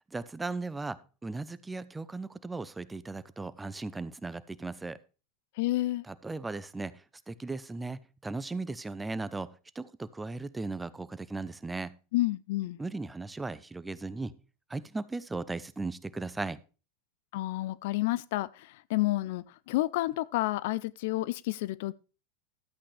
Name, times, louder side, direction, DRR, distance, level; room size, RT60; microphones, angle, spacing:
voice 1, 0.1-5.0 6.1-12.0 12.8-14.4 14.7-16.6, right 3 dB, 10° right, 0.6 m, -37 dB
voice 2, 5.6-6.0 12.1-12.8 17.3-21.9, left 17 dB, 65° left, 0.4 m, -30 dB
12.5 x 8.5 x 3.3 m
hypercardioid pair, 95°, 0 cm